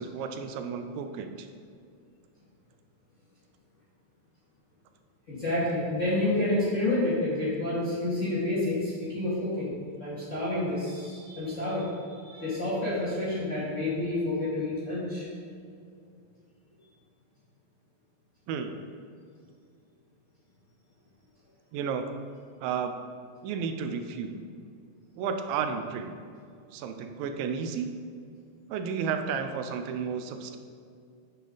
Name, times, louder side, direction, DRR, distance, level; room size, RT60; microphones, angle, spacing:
voice 1, 0.0-1.5 18.5-18.8 21.7-22.1 22.6-22.9 23.4-24.4 25.2-26.2 26.7-27.9 28.7-30.6, right 6 dB, 85° right, 6 dB, 2.4 m, -32 dB
voice 2, 5.3-9.7 10.0-15.3, left 2 dB, 25° left, -10 dB, 2.0 m, -29 dB
9.0 x 7.0 x 4.0 m, 2.3 s
omnidirectional pair, 4.0 m